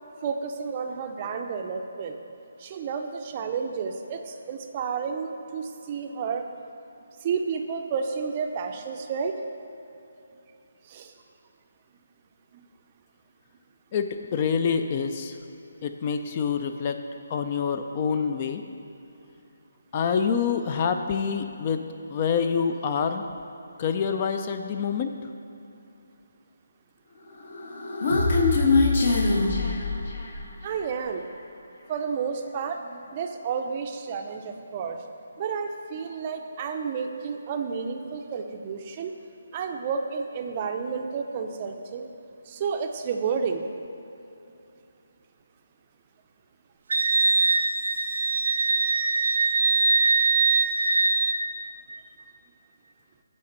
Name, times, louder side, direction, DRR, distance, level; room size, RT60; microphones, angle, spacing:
voice 1, 0.2-2.2 2.6-6.5 7.2-9.4 10.9-11.1 30.6-31.3 31.9-35.0 35.4-39.2 39.5-42.1 42.5-43.7 50.0-50.1, right 6 dB, 30° right, 5 dB, 0.5 m, -31 dB
voice 2, 13.9-15.4 15.8-17.0 17.3-18.6 19.9-21.8 22.1-23.3 23.8-25.1, left 6 dB, 30° left, 7 dB, 0.3 m, -26 dB
Human voice, 27.4-30.5, left 3 dB, 50° left, 1.0 m, -23 dB
Wind instrument woodwind instrument, 46.9-51.4, right 4 dB, 75° right, 0.5 m, -22 dB
8.4 x 4.2 x 6.6 m, 2.8 s
hypercardioid pair, 165°, 0 cm